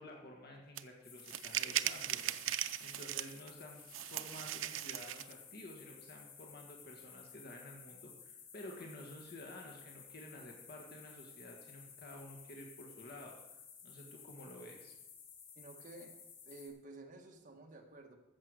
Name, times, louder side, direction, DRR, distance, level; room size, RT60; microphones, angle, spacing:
voice 1, 0.0-14.9, left 1 dB, 55° left, 1 dB, 1.6 m, -52 dB
sound 1, 0.8-0.9 1.3-3.5 3.9-5.3, right 12 dB, 90° right, 0.6 m, -38 dB
sound 2, 1.0-16.7, left 7 dB, 85° left, 2.6 m, -56 dB
voice 2, 15.6-16.1 16.4-18.2, right 2 dB, 45° right, 2 dB, 1.8 m, -52 dB
14.5 x 6.9 x 6.4 m, 0.94 s
head